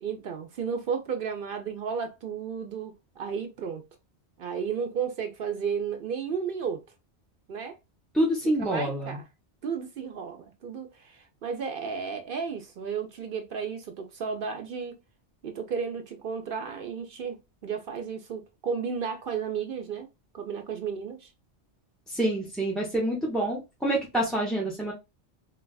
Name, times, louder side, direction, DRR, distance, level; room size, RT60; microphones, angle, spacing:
voice 1, 0.0-3.8 4.4-6.8 7.5-7.8 8.6-9.2 9.6-14.9 15.4-20.1 20.3-21.3, right 6 dB, 55° right, 0.7 m, -33 dB
voice 2, 8.1-9.2 22.1-24.9, right 1 dB, ahead, 0.7 m, -27 dB
3.9 x 2.3 x 2.3 m
omnidirectional pair, 1.2 m